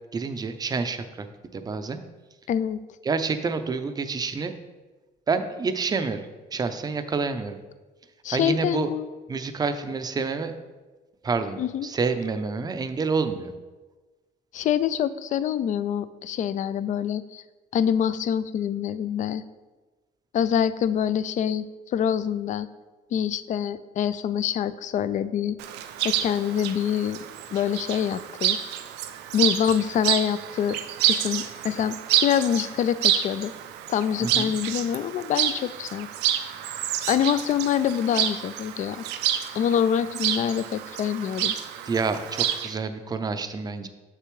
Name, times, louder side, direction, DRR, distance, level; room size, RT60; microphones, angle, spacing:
voice 1, 0.1-1.3 1.5-2.0 3.0-4.5 5.3-7.6 8.3-8.9 9.3-10.5 11.2-13.5 34.2-34.5 41.9-43.9, right 4 dB, 25° right, 9 dB, 0.5 m, -28 dB
voice 2, 2.5-2.8 8.2-9.1 11.6-11.9 14.5-17.4 17.7-19.4 20.3-21.6 21.9-22.7 23.1-25.6 26.0-27.2 27.5-28.6 29.3-33.5 33.9-36.1 37.1-39.0 39.5-41.6, left 9 dB, 50° left, 15 dB, 0.4 m, -25 dB
Chirp tweet, 25.6-42.7, right 11 dB, 85° right, 0.5 m, -28 dB
6.7 x 6.7 x 3.2 m, 1.3 s
cardioid pair, 110°, 17 cm